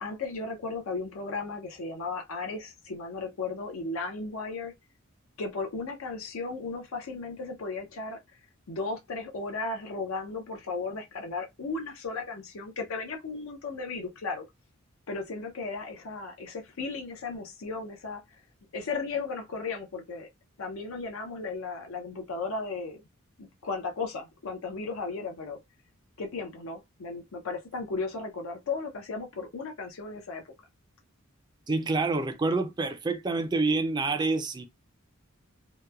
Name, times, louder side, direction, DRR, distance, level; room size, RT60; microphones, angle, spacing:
voice 1, 0.0-4.7 5.4-8.2 8.7-14.5 15.1-18.4 18.7-20.3 20.6-23.0 23.4-25.6 26.2-30.5, left 3 dB, 75° left, 0.6 m, -35 dB
voice 2, 31.7-34.7, right 3 dB, 20° right, 0.4 m, -27 dB
2.9 x 2.1 x 2.2 m
head